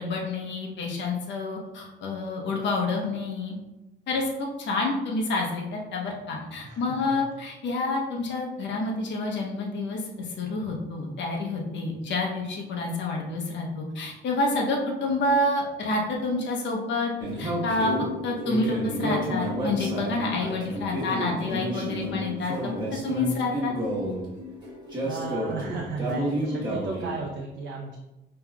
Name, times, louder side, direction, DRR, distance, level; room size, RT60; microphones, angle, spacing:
voice 1, 0.0-3.5 4.1-17.1 17.4-17.9 18.2-22.5 23.0-23.7, left 2 dB, 65° left, -1 dB, 0.9 m, -28 dB
voice 2, 6.6-7.2 25.0-28.0, right 4 dB, 60° right, -1 dB, 0.6 m, -35 dB
sound 1, 17.2-27.2, equal, 20° right, 1.3 m, -30 dB
5.5 x 3.0 x 2.3 m, 0.95 s
cardioid pair, 90°, 20 cm